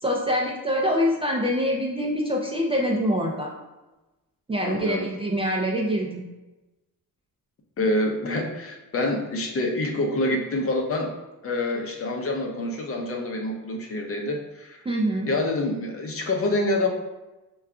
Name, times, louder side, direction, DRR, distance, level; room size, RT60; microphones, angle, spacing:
voice 1, 0.0-3.5 4.5-6.2 14.9-15.3, equal, 15° right, -3 dB, 0.3 m, -25 dB
voice 2, 4.6-5.1 7.8-11.1 11.4-14.8 15.3-16.9, left 2 dB, 40° left, 2 dB, 0.6 m, -26 dB
5.6 x 2.3 x 3.6 m, 1.1 s
cardioid pair, 155°, 37 cm